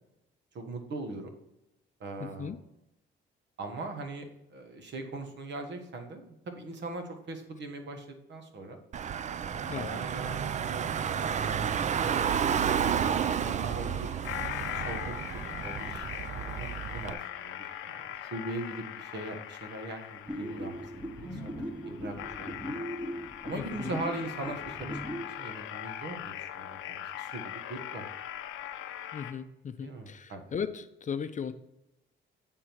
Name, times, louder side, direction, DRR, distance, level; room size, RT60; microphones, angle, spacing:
voice 1, 0.5-1.3 2.0-2.5 3.6-8.8 9.4-11.7 12.0-12.2 13.2-14.1 14.7-20.8 21.2-21.5 21.8-22.7 23.4-27.4 27.7-28.1 29.8-30.4, right 2 dB, 65° right, 5 dB, 1.3 m, -40 dB
voice 2, 2.2-2.6 9.6-9.9 23.5-24.0 29.1-31.5, left 7 dB, 40° left, 11 dB, 0.5 m, -37 dB
Car / Engine, 8.9-17.1, right 8 dB, 35° right, 0.4 m, -31 dB
sound 1, 12.1-29.3, left 11 dB, 90° left, 0.6 m, -41 dB
sound 2, 20.3-25.3, equal, 5° right, 0.9 m, -39 dB
8.9 x 3.7 x 4.5 m, 0.87 s
cardioid pair, 90°, 20 cm